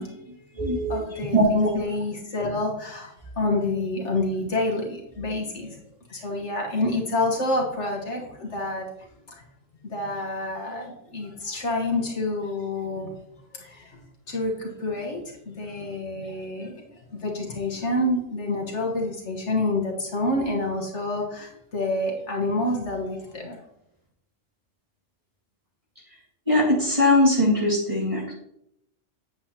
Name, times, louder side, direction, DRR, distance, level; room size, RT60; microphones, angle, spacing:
voice 1, 0.0-3.1 3.4-5.8 6.1-9.4 9.8-13.1 13.5-23.6, left 2 dB, 65° left, 0 dB, 1.7 m, -28 dB
voice 2, 0.6-1.7 26.5-28.3, left 1 dB, 25° right, -4 dB, 2.1 m, -21 dB
8.7 x 7.9 x 2.9 m, 0.78 s
omnidirectional pair, 1.3 m